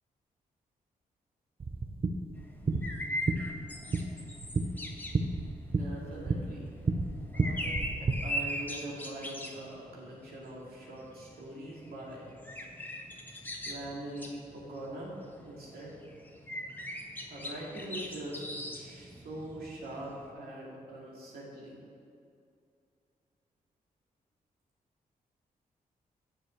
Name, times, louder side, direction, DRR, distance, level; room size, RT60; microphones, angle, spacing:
sound 1, 1.6-8.1, right 3 dB, 40° right, 0.8 m, -32 dB
sound 2, 2.4-20.3, equal, 10° left, 1.4 m, -41 dB
voice 1, 5.7-6.7 7.3-12.4 13.6-15.2 15.4-16.0 17.3-18.4 18.7-21.8, right 1 dB, 85° right, -4 dB, 2.5 m, -43 dB
7.5 x 6.8 x 6.5 m, 2.4 s
cardioid pair, 70°, 15 cm